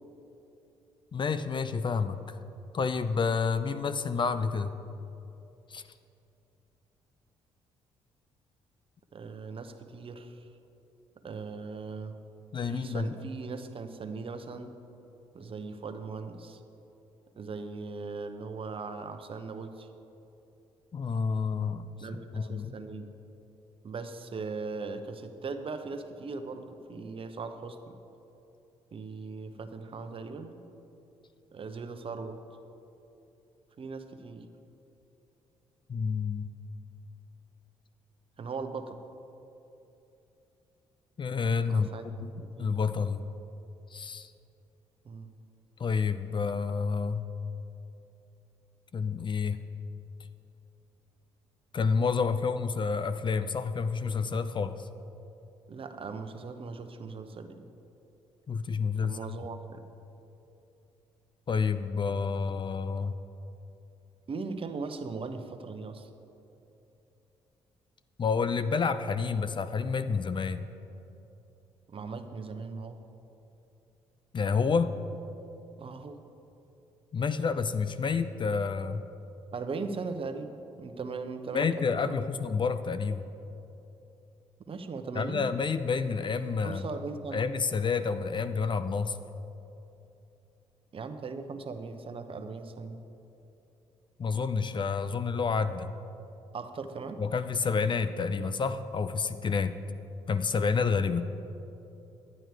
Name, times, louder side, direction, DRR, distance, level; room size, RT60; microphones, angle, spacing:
voice 1, 1.1-2.4 2.7-4.7 5.7-5.8 12.5-13.1 20.9-21.9 22.3-22.7 35.9-36.5 41.2-41.9 42.2-42.3 42.6-43.3 43.9-44.3 45.8-47.2 48.9-49.6 51.7-54.9 58.5-59.2 61.5-63.1 68.2-70.7 74.3-75.0 77.1-79.0 81.5-83.2 85.1-86.9 87.3-89.2 94.2-95.9 97.2-99.7 100.3-101.3, left 5 dB, 40° left, 11 dB, 0.5 m, -29 dB
voice 2, 9.1-10.5 11.2-12.2 12.7-14.7 15.3-16.6 17.4-19.9 22.0-23.1 23.8-28.0 28.9-30.6 31.5-32.4 33.8-34.5 38.4-39.0 41.7-42.8 45.0-45.4 55.7-57.6 59.0-59.8 64.3-66.1 71.9-73.0 75.8-76.2 79.5-82.2 84.7-85.5 86.6-87.4 90.9-93.0 96.5-97.2, right 4 dB, 45° right, 7 dB, 0.9 m, -39 dB
11.0 x 9.0 x 4.7 m, 2.9 s
hypercardioid pair, 50°, 13 cm